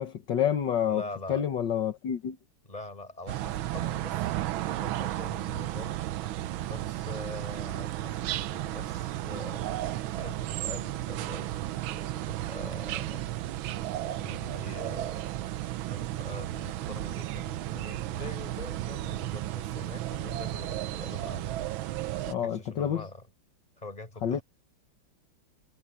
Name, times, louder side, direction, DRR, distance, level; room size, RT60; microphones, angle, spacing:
voice 1, 0.0-2.4 22.3-23.0 24.2-24.4, left 9 dB, 65° left, 2.0 m, -28 dB
voice 2, 0.9-1.4 2.6-6.0 6.6-9.7 10.1-11.6 11.9-13.2 14.0-15.3 15.9-21.6 22.4-23.3 23.8-24.4, left 2 dB, 20° left, 5.3 m, -44 dB
sound 1, 3.3-22.3, right 14 dB, 85° right, 1.5 m, -34 dB
omnidirectional pair, 2.1 m